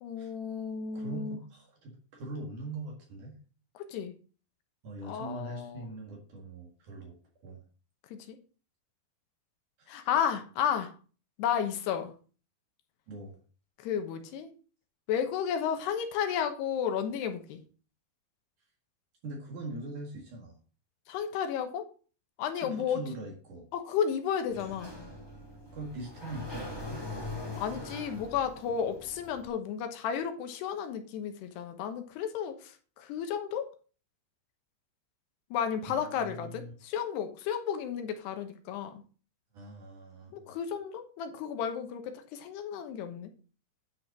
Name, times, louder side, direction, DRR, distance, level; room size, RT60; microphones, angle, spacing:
voice 1, 0.0-1.4 3.8-4.1 5.0-5.9 8.1-8.4 9.9-10.9 11.4-12.1 13.8-14.5 15.1-17.6 21.1-21.9 22.4-23.0 23.7-24.9 27.6-33.7 35.5-39.0 40.3-43.3, left 8 dB, 80° left, 7 dB, 3.2 m, -33 dB
voice 2, 0.9-3.4 4.8-7.2 7.4-7.6 9.8-10.1 13.1-13.4 19.2-20.6 22.5-23.7 25.7-27.1 35.9-36.7 39.5-40.6, right 2 dB, 55° right, 0 dB, 3.1 m, -42 dB
Sliding door, 24.5-29.5, left 2 dB, 10° left, 1.2 m, -42 dB
9.9 x 5.7 x 6.1 m, 0.38 s
omnidirectional pair, 4.8 m